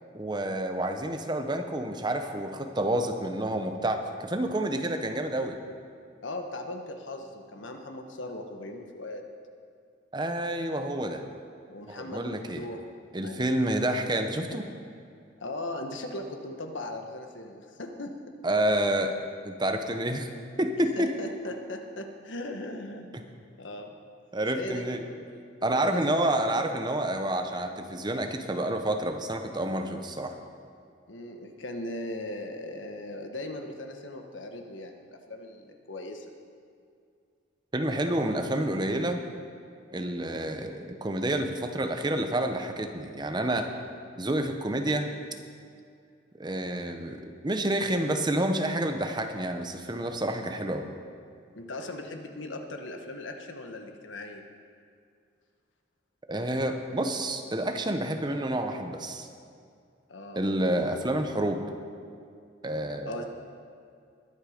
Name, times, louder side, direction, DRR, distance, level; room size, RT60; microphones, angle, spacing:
voice 1, 0.1-5.6 10.1-11.2 11.9-12.6 13.1-14.6 18.4-19.2 19.4-20.3 20.6-21.1 24.3-25.0 25.6-30.4 37.7-39.2 39.9-43.7 44.2-45.1 46.4-50.8 56.3-59.3 60.3-61.6 62.6-63.2, right 1 dB, 25° right, 6 dB, 0.9 m, -29 dB
voice 2, 6.2-9.3 11.7-12.8 13.2-13.5 15.4-18.1 21.0-23.1 23.6-23.9 24.5-26.6 31.1-36.3 51.5-54.4 60.1-60.4 63.0-63.3, left 1 dB, 85° left, 4 dB, 1.3 m, -38 dB
21.0 x 8.0 x 5.1 m, 2.3 s
head